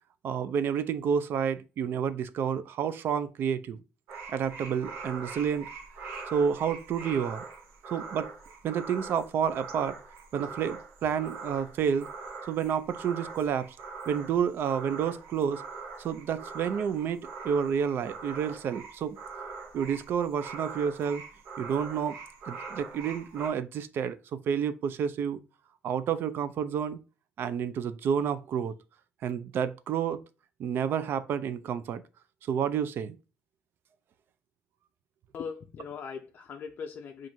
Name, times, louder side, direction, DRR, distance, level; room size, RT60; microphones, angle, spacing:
voice 1, 0.2-3.8 4.3-5.7 6.3-7.4 7.9-8.3 8.6-10.0 10.3-12.1 12.5-13.8 14.1-15.6 16.0-19.2 19.7-21.2 21.6-22.2 22.5-25.4 25.8-27.0 27.4-28.7 29.2-30.2 30.6-32.0 32.4-33.2, right 7 dB, 60° right, 0.4 m, -30 dB
sound 1, 4.1-23.5, right 4 dB, 80° right, 0.8 m, -43 dB
voice 2, 35.3-37.3, left 6 dB, 50° left, 0.4 m, -40 dB
5.9 x 2.5 x 2.7 m
cardioid pair, 105°, 4 cm